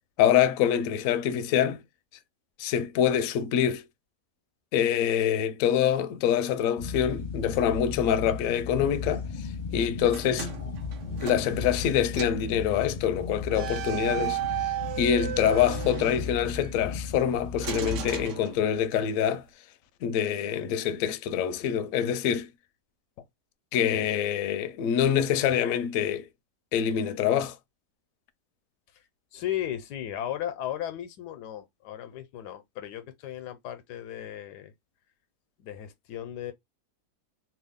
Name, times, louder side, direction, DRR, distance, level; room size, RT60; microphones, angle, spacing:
voice 1, 0.2-1.8 2.6-3.8 4.7-10.5 11.2-19.4 20.0-22.5 23.7-26.3 26.7-27.6, left 9 dB, 70° left, 0.9 m, -25 dB
sound 1, 6.8-18.3, left 5 dB, 45° left, 0.6 m, -36 dB
sound 2, 10.1-11.9 12.2-12.5 13.5-16.7 17.6-19.0, right 12 dB, 65° right, 0.7 m, -35 dB
voice 2, 29.3-34.7 35.6-36.5, left 11 dB, 85° left, 1.2 m, -36 dB
2.9 x 2.3 x 3.5 m
omnidirectional pair, 1.7 m